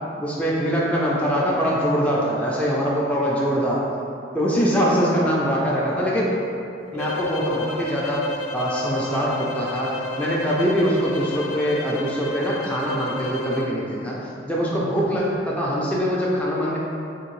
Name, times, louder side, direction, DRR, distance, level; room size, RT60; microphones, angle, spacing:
voice 1, 0.2-3.8 4.3-6.3 6.9-8.2 8.5-14.1 14.5-16.8, equal, 5° left, -5 dB, 0.3 m, -23 dB
sound 1, 6.9-13.8, left 2 dB, 80° left, 0.4 m, -32 dB
3.6 x 2.6 x 3.0 m, 2.7 s
head